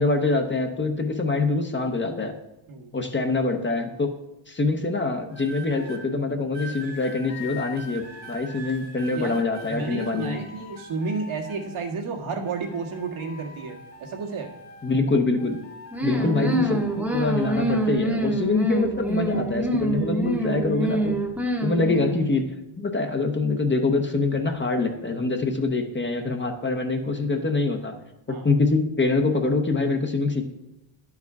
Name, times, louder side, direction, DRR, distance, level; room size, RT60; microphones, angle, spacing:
voice 1, 0.0-2.3 2.9-4.1 4.5-8.0 8.3-10.4 14.8-15.6 16.0-21.2 21.6-22.4 22.8-27.9 28.3-30.5, left 3 dB, 25° left, 5 dB, 0.8 m, -24 dB
sound 1, 5.3-6.0 6.5-12.1 12.4-15.1 15.4-17.9 18.7-19.0, equal, 50° left, 2.0 m, -43 dB
voice 2, 9.7-14.5 16.1-16.4 28.3-28.4, right 4 dB, 70° right, 0 dB, 1.7 m, -32 dB
sound 2, 15.9-22.3, right 1 dB, 5° right, 1.0 m, -26 dB
11.0 x 4.8 x 4.7 m, 0.89 s
cardioid pair, 120°, 50 cm